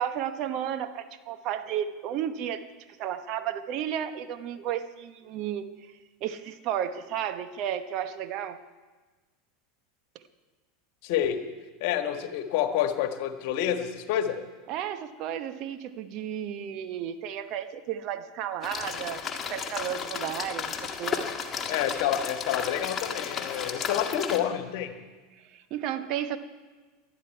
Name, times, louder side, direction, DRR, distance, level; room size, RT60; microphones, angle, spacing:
voice 1, 0.0-2.6 3.0-5.9 6.2-8.6 14.7-21.3 25.4-26.4, right 10 dB, 50° right, 10 dB, 1.1 m, -33 dB
voice 2, 11.0-11.4 11.8-14.4 21.7-24.9, left 10 dB, 60° left, 7 dB, 1.5 m, -28 dB
sound 1, 18.6-24.4, left 6 dB, 30° left, 2.0 m, -34 dB
19.5 x 12.0 x 4.6 m, 1.3 s
hypercardioid pair, 85°, 0 cm